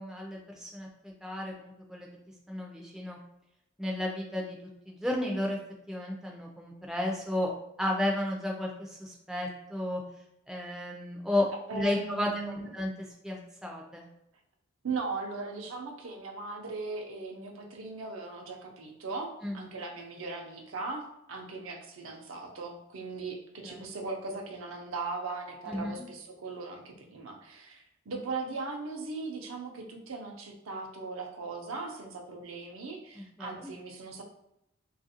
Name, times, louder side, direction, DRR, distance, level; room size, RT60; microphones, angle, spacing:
voice 1, 0.0-2.1 2.5-3.2 3.8-4.6 4.9-5.6 5.9-7.5 7.8-10.0 10.5-12.9 13.2-14.1 19.4-19.6 23.6-23.8 25.7-26.0 33.1-33.6, left 1 dB, ahead, -1 dB, 0.3 m, -33 dB
voice 2, 11.7-12.7 14.8-34.2, right 3 dB, 80° right, 2 dB, 0.5 m, -38 dB
3.3 x 2.4 x 2.8 m, 0.82 s
head